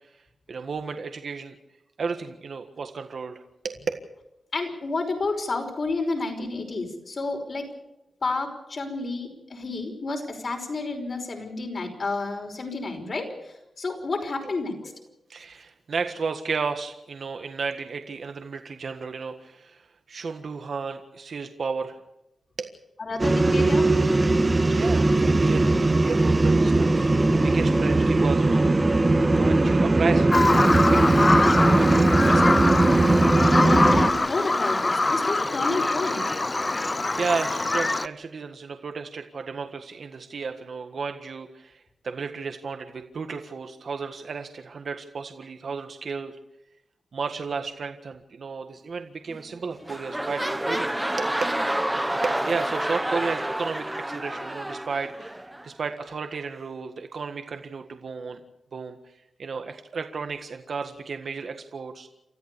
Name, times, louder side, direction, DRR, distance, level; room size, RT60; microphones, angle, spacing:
voice 1, 0.5-1.5 2.0-3.8 15.3-19.8 20.1-22.0 22.6-22.7 24.2-24.4 24.7-31.2 31.6-32.7 36.7-46.3 47.1-50.9 51.2-51.3 52.2-55.4 55.6-58.4 58.7-59.0 59.4-62.1, right 5 dB, 55° right, 6 dB, 1.6 m, -33 dB
voice 2, 4.5-7.7 8.2-14.9 23.0-23.9 33.4-36.2, left 3 dB, 45° left, 3 dB, 5.4 m, -30 dB
sound 1, 23.2-34.1, right 2 dB, 25° right, 1.6 m, -19 dB
Bird vocalization bird call bird song, 30.3-38.1, left 2 dB, 25° left, 0.7 m, -23 dB
sound 2, 49.3-49.6 49.8-55.7 56.3-56.4, right 1 dB, 10° right, 1.2 m, -29 dB
29.0 x 14.0 x 6.9 m, 0.88 s
wide cardioid pair, 115°, 0 cm